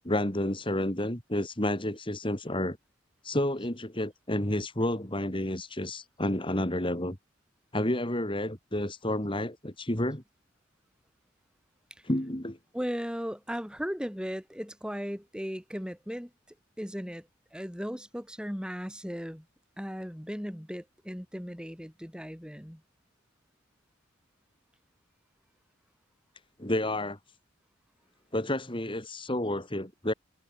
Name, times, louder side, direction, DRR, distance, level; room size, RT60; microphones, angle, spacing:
voice 1, 0.0-2.8 3.2-7.2 7.7-10.2 12.0-12.6 26.6-27.2 28.3-30.1, left 1 dB, 25° left, 3.6 m, -30 dB
voice 2, 12.7-16.3 16.8-17.3 17.5-19.4 19.8-22.8, equal, 5° right, 7.9 m, -36 dB
head